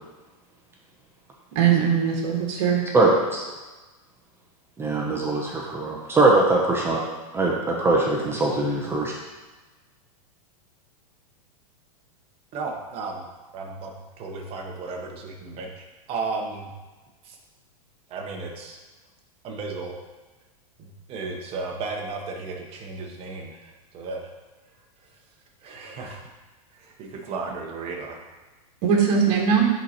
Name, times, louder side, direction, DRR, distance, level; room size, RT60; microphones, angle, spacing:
voice 1, 1.5-2.8 28.8-29.7, right 7 dB, 55° right, -2 dB, 1.6 m, -20 dB
voice 2, 2.9-3.4 4.8-7.0 7.3-9.1, right 2 dB, 10° right, -2 dB, 0.7 m, -21 dB
voice 3, 12.5-13.2 13.5-16.7 17.2-17.4 18.1-18.8 19.4-19.9 20.8-24.2 25.6-26.2 26.7-28.2, right 4 dB, 30° right, 1 dB, 1.1 m, -34 dB
10.0 x 4.1 x 2.9 m, 1.2 s
supercardioid pair, 145°, 19 cm